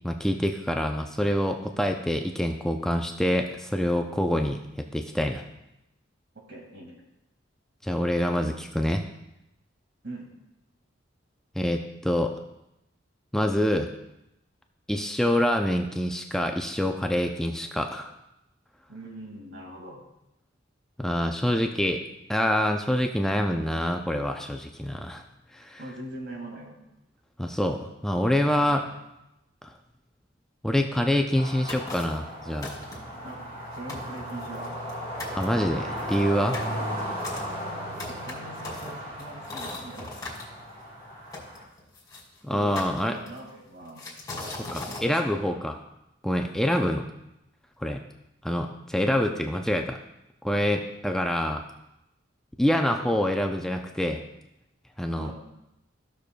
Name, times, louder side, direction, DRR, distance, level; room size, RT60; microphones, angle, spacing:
voice 1, 0.0-5.4 7.8-9.0 11.6-12.3 13.3-13.9 14.9-18.1 21.0-22.0 22.3-25.2 25.5-25.8 27.4-28.9 30.6-32.7 35.3-36.6 42.4-43.2 44.7-45.7 46.2-47.1 47.8-48.0 48.4-50.0 50.4-51.6 52.6-54.2 55.0-55.3, equal, 5° left, 3 dB, 0.4 m, -26 dB
voice 2, 6.3-7.0 10.0-10.3 18.9-20.0 25.8-26.8 28.6-28.8 33.2-33.4 33.7-34.8 36.7-36.9 38.1-40.1 42.5-42.8 43.1-44.0 44.9-45.7 52.9-53.1 55.2-55.3, right 2 dB, 65° right, 1 dB, 2.0 m, -42 dB
sound 1, 31.3-41.6, equal, 35° right, 2.7 m, -36 dB
sound 2, 31.7-32.2 32.6-33.2 33.6-33.7 33.9-34.9 35.2-35.4 36.0-40.4 41.3-42.2 42.8-43.5 44.0-45.1, left 2 dB, 20° left, 2.4 m, -39 dB
14.5 x 6.6 x 2.2 m, 0.90 s
head